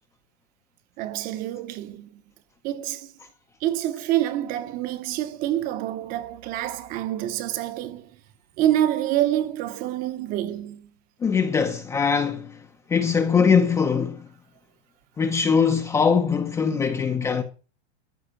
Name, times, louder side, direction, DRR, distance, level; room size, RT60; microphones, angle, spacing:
voice 1, 1.0-2.2 2.6-3.1 3.6-8.1 8.6-10.9, right 12 dB, 25° right, 0.9 m, -27 dB
voice 2, 11.2-12.6 12.9-14.3 15.2-17.4, left 6 dB, 10° left, 0.6 m, -22 dB
14.0 x 5.4 x 9.6 m
supercardioid pair, 175°, 32 cm